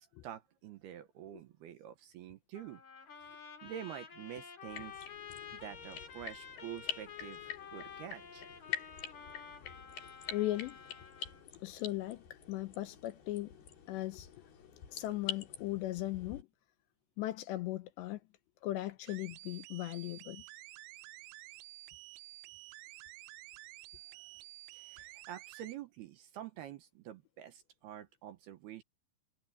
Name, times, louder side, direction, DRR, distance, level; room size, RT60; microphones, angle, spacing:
voice 1, 0.2-2.8 3.2-5.0 5.6-8.5 24.1-24.2 24.7-28.8, right 11 dB, 70° right, 2.7 m, -47 dB
Trumpet, 2.5-11.5, left 7 dB, 40° left, 4.3 m, -50 dB
sound 1, 4.6-16.4, left 9 dB, 55° left, 5.0 m, -46 dB
voice 2, 10.3-10.8 11.6-13.5 13.9-14.3 14.9-16.5 17.2-18.2 18.6-20.4, left 16 dB, 80° left, 2.8 m, -38 dB
sound 2, 19.1-25.8, right 18 dB, 85° right, 3.1 m, -52 dB
omnidirectional pair, 5.5 m